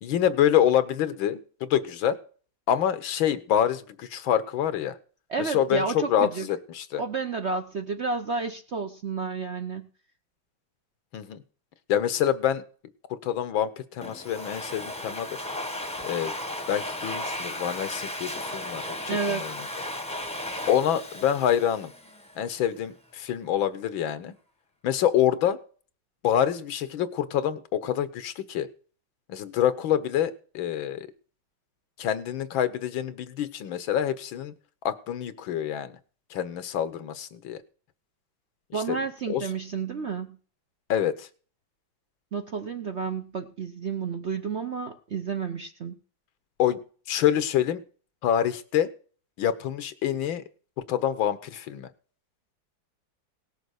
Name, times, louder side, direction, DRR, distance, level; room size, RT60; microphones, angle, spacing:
voice 1, 0.0-2.2 2.7-5.0 5.4-7.0 11.1-11.4 11.9-12.6 13.1-15.4 16.0-16.3 16.7-19.5 20.7-21.9 22.4-24.3 24.8-25.6 26.2-28.7 29.3-31.1 32.0-34.5 34.8-36.0 36.3-37.6 38.9-39.0 39.3-39.4 40.9-41.3 46.6-46.8 47.1-47.8 48.2-48.9 49.4-50.4 50.9-51.9, left 10 dB, 80° left, 13 dB, 1.7 m, -26 dB
voice 2, 5.3-6.5 7.0-9.9 19.1-19.4 38.7-40.4 42.3-46.0, right 5 dB, 50° right, 6 dB, 0.8 m, -31 dB
Domestic sounds home sounds, 14.0-22.4, left 1 dB, 5° left, 0.9 m, -35 dB
18.0 x 6.8 x 6.4 m, 0.42 s
omnidirectional pair, 2.1 m